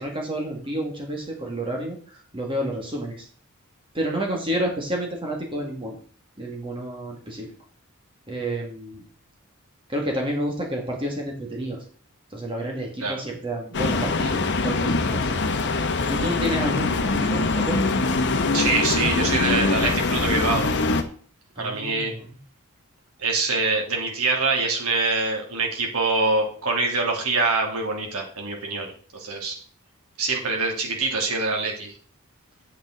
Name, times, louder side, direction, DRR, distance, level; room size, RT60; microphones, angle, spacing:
voice 1, 0.0-3.3 3.9-6.0 6.4-7.5 8.3-9.0 9.9-11.8 12.3-15.4 16.1-18.0 21.6-22.4, right 1 dB, 25° right, 0 dB, 2.2 m, -30 dB
sound 1, 13.7-21.0, left 3 dB, 55° left, 1.0 m, -23 dB
voice 2, 18.5-20.7 21.6-22.1 23.2-29.5 30.2-31.9, right 3 dB, 80° right, 0 dB, 2.9 m, -24 dB
8.8 x 7.9 x 3.9 m, 0.44 s
head